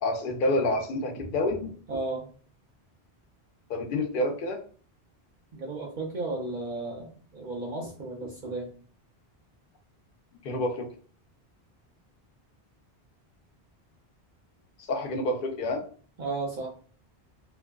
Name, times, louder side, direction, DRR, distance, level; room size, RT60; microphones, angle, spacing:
voice 1, 0.0-1.7 3.7-4.6 10.4-10.9 14.9-15.8, left 1 dB, 60° left, 4 dB, 0.7 m, -28 dB
voice 2, 1.9-2.3 5.5-8.7 16.2-16.7, right 2 dB, 60° right, 0 dB, 0.6 m, -34 dB
2.4 x 2.3 x 2.2 m, 0.43 s
omnidirectional pair, 1.1 m